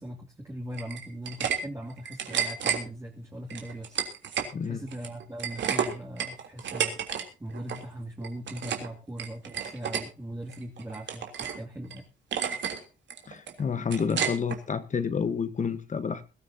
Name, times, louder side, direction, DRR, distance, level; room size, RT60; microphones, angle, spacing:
voice 1, 0.0-11.2 11.6-12.0, right 1 dB, 15° right, 2.8 m, -40 dB
sound 1, 0.7-1.6 1.9-2.8 3.5-4.5 4.9-7.2 7.5-7.8 8.2-8.9 9.2-10.0 10.5-11.6 11.9-12.0 12.3-12.8 13.1-14.6, right 8 dB, 65° right, 3.4 m, -31 dB
voice 2, 4.5-4.8 13.3-16.2, left 6 dB, 40° left, 1.3 m, -29 dB
21.5 x 13.5 x 2.8 m
cardioid pair, 90°, 20 cm